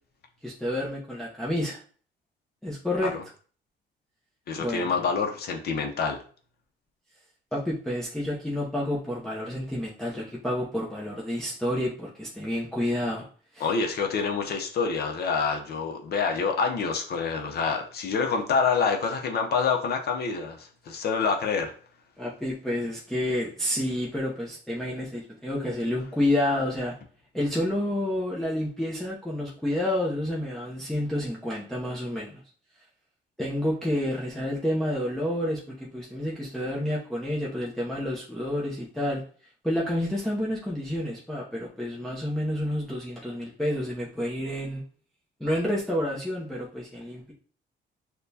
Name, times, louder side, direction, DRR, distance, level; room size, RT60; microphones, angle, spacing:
voice 1, 0.4-1.8 2.6-3.1 4.6-5.0 7.5-13.2 13.5-13.7 22.2-26.9 27.3-32.4 33.4-39.2 39.6-44.8 45.4-47.3, left 1 dB, ahead, -5 dB, 0.6 m, -29 dB
voice 2, 4.5-6.2 13.6-21.7, left 5 dB, 55° left, 3 dB, 0.6 m, -27 dB
6.5 x 2.2 x 2.7 m, 0.43 s
cardioid pair, 140°, 20 cm